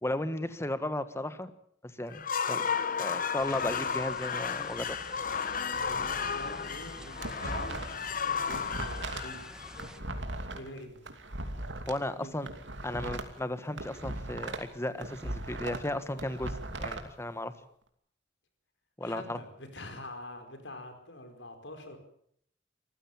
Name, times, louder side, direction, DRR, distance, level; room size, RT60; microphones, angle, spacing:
voice 1, 0.0-1.5 1.8-2.7 3.0-5.0 11.9-12.5 12.8-17.5 19.0-19.4, left 1 dB, 15° left, 12 dB, 1.4 m, -35 dB
sound 1, 2.1-10.2, left 6 dB, 50° left, 1.1 m, -33 dB
sound 2, 3.4-10.0, equal, 5° right, 1.6 m, -48 dB
voice 2, 5.7-9.4 10.5-11.1 12.0-12.5 19.0-22.0, left 1 dB, 75° left, 6 dB, 4.7 m, -45 dB
sound 3, 6.8-8.1 8.3-11.9 12.3-14.7 15.0-17.0, right 2 dB, 80° right, 2.7 m, -38 dB
26.0 x 15.0 x 7.3 m, 0.68 s
head